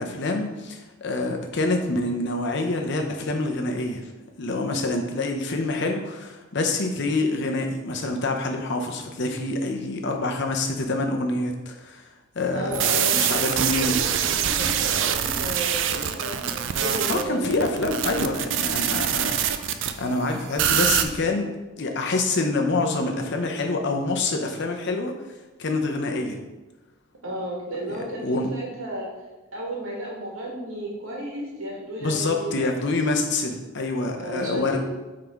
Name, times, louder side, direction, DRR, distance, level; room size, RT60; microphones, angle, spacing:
voice 1, 0.0-4.0 4.4-12.0 12.4-14.0 17.1-21.5 21.8-25.1 25.6-26.4 27.9-28.5 32.0-34.8, left 2 dB, 55° left, 3 dB, 0.8 m, -26 dB
voice 2, 12.5-17.6 27.2-29.1 29.5-33.0 34.2-34.8, right 1 dB, 80° right, -3 dB, 1.8 m, -33 dB
sound 1, 12.7-19.9 20.6-21.0, right 9 dB, 60° right, 0.4 m, -24 dB
5.4 x 3.8 x 4.5 m, 1.2 s
head